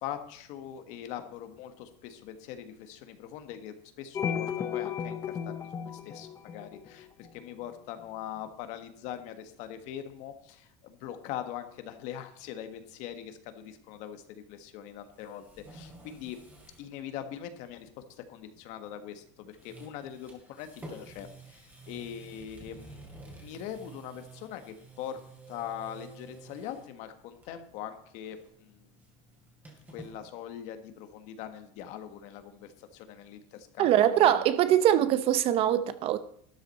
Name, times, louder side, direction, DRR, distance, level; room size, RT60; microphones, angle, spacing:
voice 1, 0.0-16.4 16.8-25.2 25.5-28.9 29.9-34.4 34.7-34.8, left 10 dB, 55° left, 1.4 m, -42 dB
sound 1, 4.1-7.3, left 8 dB, 25° left, 0.8 m, -34 dB
sound 2, 15.0-16.9 17.2-17.3 19.0-19.3 19.5-26.9 27.3-27.8 28.0-30.1, right 2 dB, 10° right, 2.7 m, -50 dB
voice 2, 33.8-36.2, right 11 dB, 40° right, 0.7 m, -23 dB
12.5 x 10.5 x 4.2 m
cardioid pair, 150°, 14 cm